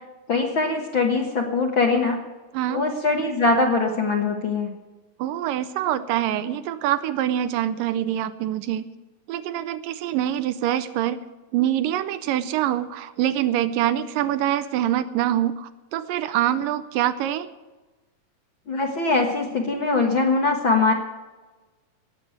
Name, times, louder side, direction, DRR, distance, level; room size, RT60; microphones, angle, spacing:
voice 1, 0.3-2.2 2.7-4.7 18.7-20.9, left 3 dB, 50° left, 2 dB, 1.6 m, -22 dB
voice 2, 5.2-8.9 9.3-11.2 11.5-17.5, right 12 dB, 85° right, 11 dB, 2.4 m, -25 dB
18.5 x 7.2 x 9.2 m, 1.2 s
omnidirectional pair, 3.8 m